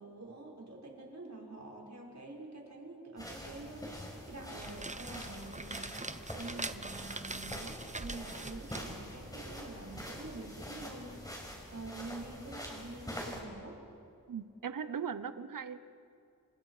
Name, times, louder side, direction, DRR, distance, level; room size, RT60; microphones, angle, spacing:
voice 1, 0.0-6.0 6.3-11.2 11.7-13.8, right 2 dB, 55° right, -2 dB, 5.8 m, -47 dB
sound 1, 3.2-13.4, equal, 10° left, 5.5 m, -45 dB
sound 2, 4.4-10.0, right 2 dB, 20° right, 1.0 m, -44 dB
voice 2, 14.3-15.8, right 7 dB, 70° right, 13 dB, 0.9 m, -39 dB
29.0 x 26.5 x 5.0 m, 2.4 s
wide cardioid pair, 75°, 34 cm